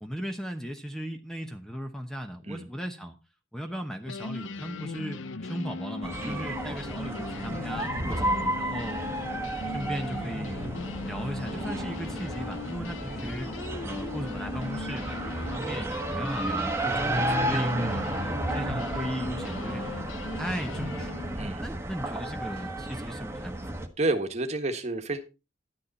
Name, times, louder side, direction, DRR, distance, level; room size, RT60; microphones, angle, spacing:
voice 1, 0.0-3.2 3.5-9.0 9.7-10.8 11.1-18.1 18.5-19.9 20.3-21.2 21.6-23.5, equal, 5° left, 0.9 m, -37 dB
sound 1, 3.7-3.8 4.0-21.4, left 3 dB, 85° left, 0.7 m, -39 dB
sound 2, 6.0-23.9, right 1 dB, 15° right, 1.3 m, -32 dB
voice 2, 24.0-25.2, right 2 dB, 35° right, 1.5 m, -30 dB
11.5 x 9.5 x 4.1 m
head